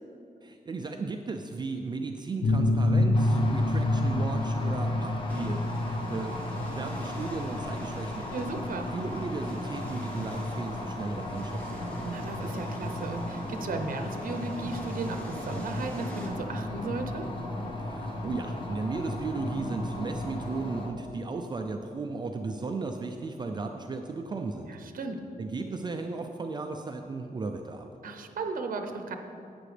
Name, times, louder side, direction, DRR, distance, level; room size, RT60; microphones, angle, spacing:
voice 1, 0.4-6.4 6.7-8.3 8.7-12.0 17.8-24.7 25.4-27.9, right 3 dB, 30° right, 4 dB, 0.4 m, -35 dB
sound 1, 2.4-11.8, left 2 dB, 90° left, 0.7 m, -28 dB
sound 2, 3.1-20.9, left 1 dB, 35° left, 1.0 m, -36 dB
sound 3, 5.3-16.3, equal, 10° left, 1.6 m, -48 dB
voice 2, 8.3-8.9 12.0-17.2 24.7-25.2 28.0-29.1, right 3 dB, 70° right, 5 dB, 0.7 m, -35 dB
11.5 x 8.5 x 3.3 m, 2.7 s
wide cardioid pair, 165°, 15 cm